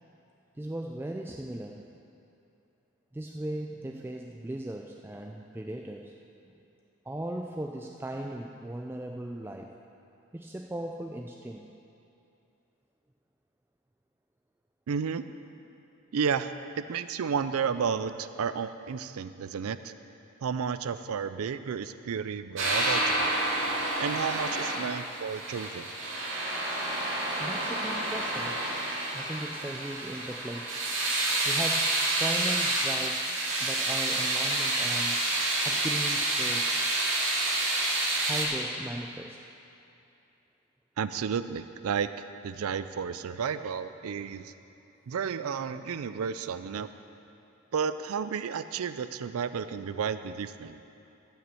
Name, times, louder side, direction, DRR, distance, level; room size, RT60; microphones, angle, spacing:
voice 1, 0.6-1.9 3.1-6.2 7.1-9.7 10.3-11.7 27.4-28.6 29.1-30.7 31.4-31.9 32.2-33.3 33.6-36.7 38.2-39.4, right 1 dB, 10° right, 2 dB, 0.3 m, -37 dB
voice 2, 14.9-15.2 16.1-19.9 20.4-23.4 24.0-25.9 41.0-44.5 45.1-46.9 47.7-50.8, right 6 dB, 80° right, 12 dB, 0.4 m, -32 dB
sound 1, 22.6-38.5, right 2 dB, 60° right, 2.2 m, -29 dB
13.5 x 5.8 x 7.6 m, 2.8 s
head